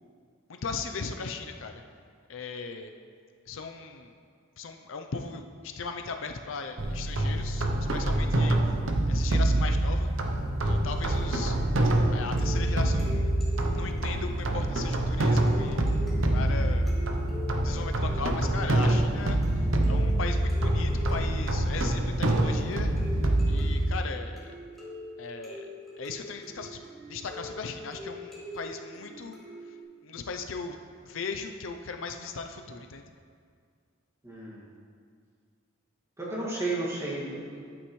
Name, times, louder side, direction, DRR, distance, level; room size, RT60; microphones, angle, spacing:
voice 1, 0.5-1.8 2.3-2.9 3.5-4.1 4.6-8.7 9.1-10.1 10.6-11.6 12.1-13.3 13.7-15.9 16.3-16.9 17.6-22.9 23.5-24.6 25.2-25.7 26.0-29.4 29.6-29.7 30.0-30.8 31.0-33.0, left 4 dB, 75° left, 5 dB, 0.6 m, -38 dB
sound 1, 6.8-24.0, right 1 dB, 70° right, 0.8 m, -26 dB
sound 2, 10.6-29.8, equal, ahead, 2.2 m, -43 dB
voice 2, 34.2-34.6 36.2-37.6, right 2 dB, 15° right, -6 dB, 2.0 m, -33 dB
11.5 x 8.8 x 3.2 m, 2.1 s
head